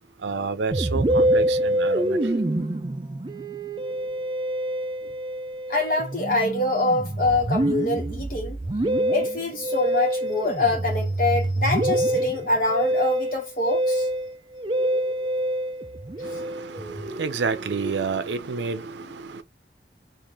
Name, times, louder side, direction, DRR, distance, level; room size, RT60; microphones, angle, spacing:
voice 1, 0.2-2.2 16.2-19.4, right 5 dB, 85° right, 0.5 m, -29 dB
Musical instrument, 0.7-18.3, right 1 dB, 25° right, 0.4 m, -26 dB
voice 2, 5.7-8.6 9.1-14.1 16.8-17.0, left 2 dB, 50° left, 1.2 m, -25 dB
3.7 x 2.5 x 3.0 m
head